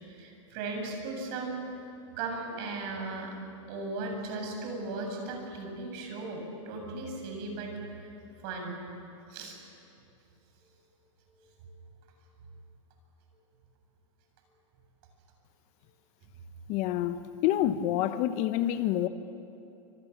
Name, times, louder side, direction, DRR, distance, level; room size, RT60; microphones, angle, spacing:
voice 1, 0.1-1.6 2.2-3.3 3.7-7.7 8.0-8.1 8.4-8.8 9.3-9.6 11.6-11.8, right 3 dB, 50° right, 2 dB, 7.9 m, -37 dB
voice 2, 16.7-19.1, left 12 dB, 40° left, 11 dB, 1.1 m, -28 dB
29.0 x 27.0 x 7.4 m, 2.8 s
hypercardioid pair, 140°, 17 cm